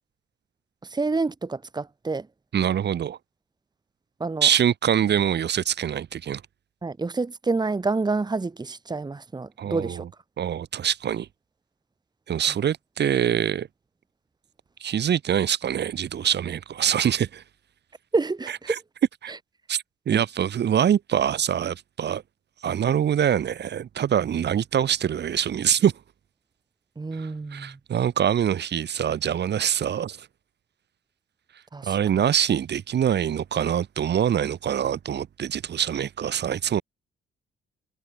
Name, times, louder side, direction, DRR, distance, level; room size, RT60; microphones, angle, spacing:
voice 1, 0.8-2.3 4.2-4.5 6.8-10.0 18.1-18.8 19.3-19.4 20.1-20.2 27.0-27.8 31.7-32.0, right 3 dB, 20° right, 1.9 m, -28 dB
voice 2, 2.5-3.2 4.4-6.4 9.6-10.1 10.4-11.3 12.3-13.7 14.8-17.4 19.2-19.3 19.7-22.2 22.6-25.9 27.1-30.3 31.8-36.8, right 9 dB, 60° right, 2.4 m, -24 dB
cardioid pair, 90°, 20 cm